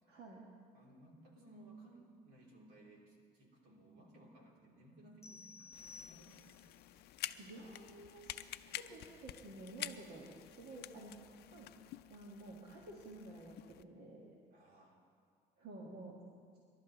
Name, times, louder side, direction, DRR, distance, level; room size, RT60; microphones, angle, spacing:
voice 1, 0.1-0.5 7.4-11.7 12.1-14.4 15.6-16.2, right 2 dB, 65° right, -3 dB, 1.8 m, -52 dB
voice 2, 0.7-6.7 14.5-15.0, right 2 dB, 85° right, -2 dB, 3.2 m, -60 dB
sound 1, 5.2-6.7, left 4 dB, 15° left, 0.6 m, -55 dB
sound 2, 5.7-13.8, left 14 dB, 75° left, 0.5 m, -49 dB
27.5 x 12.0 x 3.1 m, 2.2 s
cardioid pair, 110°, 17 cm